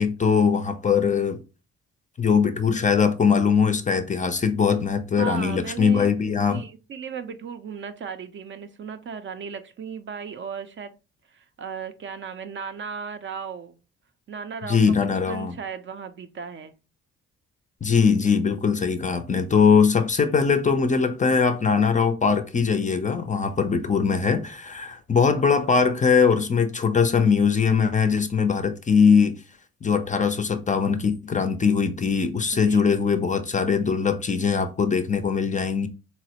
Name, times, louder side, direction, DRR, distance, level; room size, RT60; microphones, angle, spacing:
voice 1, 0.0-1.4 2.2-6.6 14.7-15.5 17.8-29.4 29.8-35.9, left 6 dB, 25° left, 0.4 m, -21 dB
voice 2, 5.1-6.1 6.5-10.9 11.3-13.8 14.3-15.0 15.3-16.7 32.6-32.9, right 6 dB, 40° right, 0.4 m, -36 dB
4.0 x 2.1 x 2.8 m
cardioid pair, 90°, 30 cm